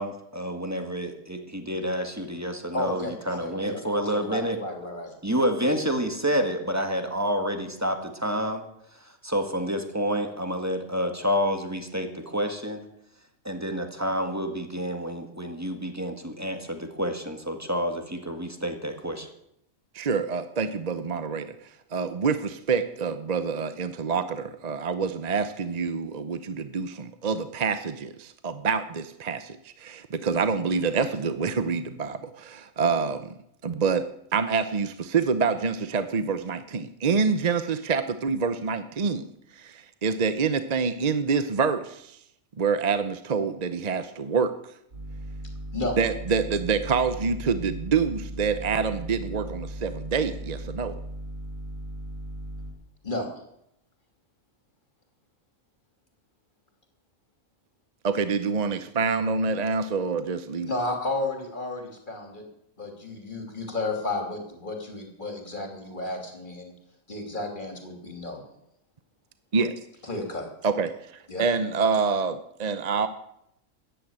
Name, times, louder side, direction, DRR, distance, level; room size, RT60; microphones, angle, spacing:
voice 1, 0.0-4.6 5.2-8.7 9.2-12.8 13.4-19.3, equal, 10° right, 5 dB, 1.7 m, -28 dB
voice 2, 2.7-5.1 45.7-46.0 53.0-53.3 60.7-62.4 62.8-66.7 67.1-68.4 70.0-70.5 71.3-71.4, left 2 dB, 35° left, 3 dB, 3.2 m, -32 dB
voice 3, 19.9-33.3 33.6-34.0 34.3-39.2 39.5-42.2 42.6-44.5 46.0-50.9 58.0-60.7 69.5-69.7 70.6-73.1, right 5 dB, 40° right, 10 dB, 0.7 m, -26 dB
sound 1, 44.9-52.7, right 1 dB, 75° right, 6.2 m, -37 dB
14.0 x 10.5 x 8.7 m, 0.78 s
omnidirectional pair, 1.4 m